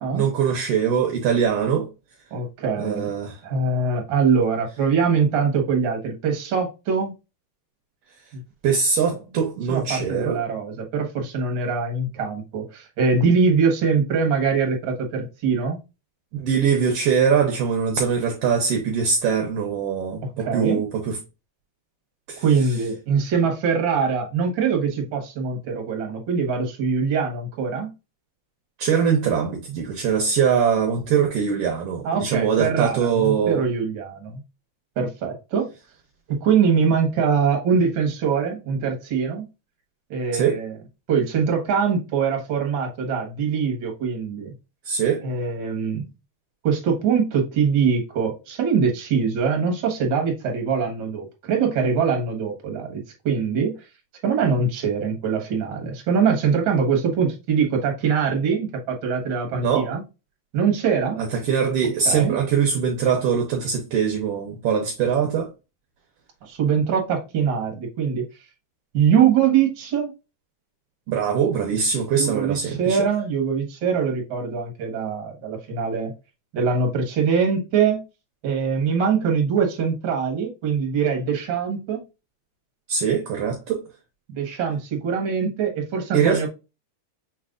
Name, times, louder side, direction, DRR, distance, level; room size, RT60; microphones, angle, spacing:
voice 1, 0.1-1.9 2.8-3.4 8.6-10.4 16.3-21.2 22.3-22.4 28.8-33.6 40.3-40.6 44.8-45.3 59.5-59.9 61.2-65.5 71.1-73.1 82.9-83.8 86.1-86.5, right 7 dB, 70° right, 1.5 m, -22 dB
voice 2, 2.3-3.1 3.4-7.1 8.3-8.4 9.7-15.8 20.4-20.8 22.4-27.9 32.0-34.4 35.0-35.7 36.3-39.4 40.1-40.7 41.1-44.5 45.2-46.0 46.6-53.7 54.2-60.0 60.5-61.2 62.0-62.4 66.4-68.2 68.9-70.1 72.2-76.1 76.5-78.0 78.4-82.0 84.3-86.5, right 6 dB, 50° right, 1.6 m, -23 dB
5.9 x 3.3 x 2.4 m
omnidirectional pair, 3.3 m